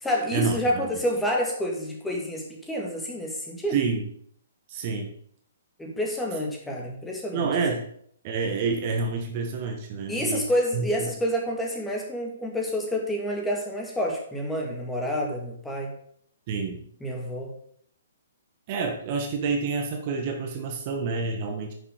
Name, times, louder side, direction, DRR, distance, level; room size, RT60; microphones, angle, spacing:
voice 1, 0.0-3.8 5.8-7.5 10.1-15.9 17.0-17.5, equal, 5° left, 0 dB, 2.2 m, -28 dB
voice 2, 3.7-4.0 4.7-5.1 7.3-7.8 8.2-10.4 10.7-11.1 16.5-16.8 18.7-21.7, right 4 dB, 35° right, 3 dB, 1.7 m, -28 dB
10.0 x 7.2 x 5.2 m, 0.63 s
figure-of-eight pair, 125°, 0 cm